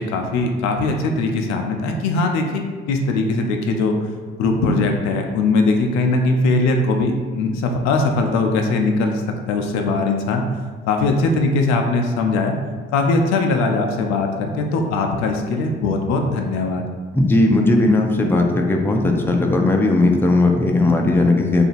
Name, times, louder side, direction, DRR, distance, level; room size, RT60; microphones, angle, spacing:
voice 1, 0.0-3.9 4.4-10.4 10.9-12.5 12.9-16.8, left 3 dB, 70° left, 3 dB, 0.5 m, -20 dB
voice 2, 17.1-21.6, left 2 dB, 10° left, 2 dB, 0.4 m, -17 dB
2.8 x 2.5 x 4.0 m, 1.5 s
hypercardioid pair, 50°, 29 cm